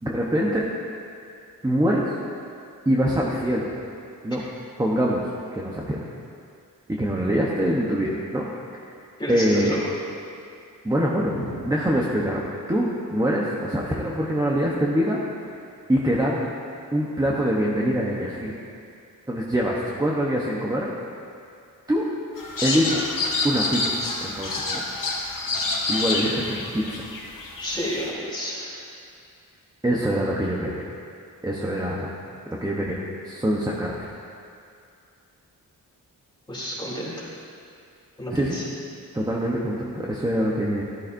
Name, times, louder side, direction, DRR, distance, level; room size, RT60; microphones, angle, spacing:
voice 1, 0.0-0.6 1.6-2.0 2.8-3.7 4.2-4.4 4.8-5.3 5.5-6.0 6.9-8.5 8.8-8.9 9.3-9.8 10.8-11.3 11.7-12.4 12.7-15.2 15.9-16.4 16.9-18.5 19.3-20.9 21.9-22.0 22.6-23.0 23.4-24.9 25.9-27.0 29.8-30.8 31.4-32.1 32.5-33.0 33.2-34.1 38.3-38.6 39.1-40.8, equal, 10° right, -4 dB, 0.9 m, -24 dB
voice 2, 9.2-9.8 11.4-11.5 27.6-28.8 36.5-37.3 38.2-38.7, equal, 15° left, -6 dB, 2.9 m, -31 dB
sound 1, 22.4-28.1, left 3 dB, 65° left, 1.5 m, -28 dB
13.0 x 12.5 x 2.6 m, 2.5 s
wide cardioid pair, 125°, 35 cm